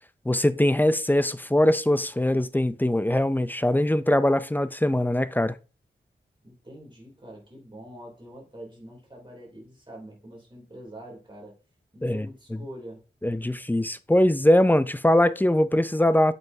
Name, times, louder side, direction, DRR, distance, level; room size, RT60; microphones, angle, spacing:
voice 1, 0.3-5.6 12.0-12.3 13.2-16.3, left 1 dB, 10° left, 0.4 m, -22 dB
voice 2, 6.4-11.6 11.9-13.0, right 1 dB, 25° right, 3.1 m, -45 dB
7.6 x 5.5 x 2.7 m
wide cardioid pair, 85°, 20 cm